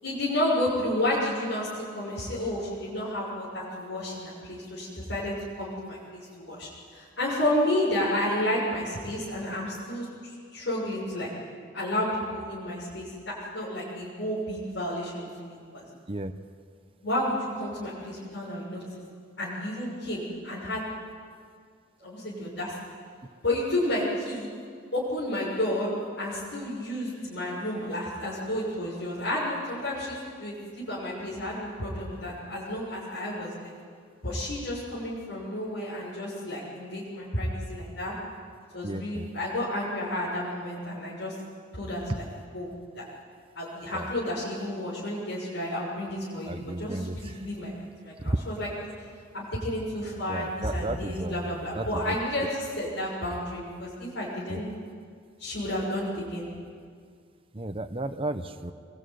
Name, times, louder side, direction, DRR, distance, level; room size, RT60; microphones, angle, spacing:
voice 1, 0.0-11.3 11.7-15.8 17.0-18.8 19.4-20.9 22.0-22.8 23.4-24.5 24.9-25.9 26.2-33.7 34.2-38.1 38.7-41.3 41.7-42.2 42.5-43.0 43.6-47.7 48.0-48.7 49.3-54.7 55.4-56.5, left 1 dB, 75° left, -7 dB, 6.8 m, -31 dB
voice 2, 22.3-22.6 38.8-39.3 43.9-44.1 46.5-47.4 48.2-48.4 50.3-52.2 54.5-54.6 57.5-58.7, right 1 dB, 30° right, 7 dB, 1.0 m, -33 dB
27.0 x 22.0 x 9.5 m, 2.1 s
head